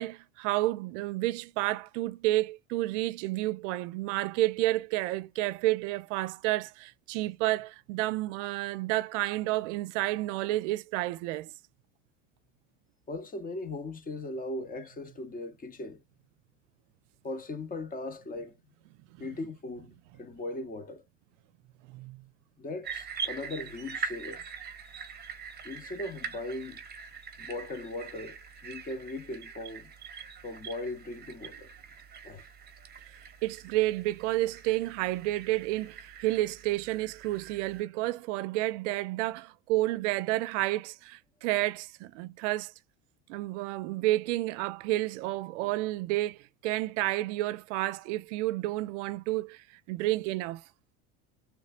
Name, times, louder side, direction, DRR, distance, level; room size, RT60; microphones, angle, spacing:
voice 1, 0.0-11.5 21.9-22.2 33.4-42.7 43.3-46.4 46.6-49.6 49.9-50.6, right 17 dB, 70° right, 0.5 m, -30 dB
voice 2, 13.1-16.0 17.2-18.6 19.2-21.0 22.6-24.4 25.6-26.8 27.4-29.9 30.4-31.7 32.2-32.5, left 2 dB, 20° left, 0.8 m, -38 dB
sound 1, 22.8-37.8, right 6 dB, 25° right, 1.0 m, -43 dB
3.4 x 3.1 x 2.4 m
hypercardioid pair, 95°, 38 cm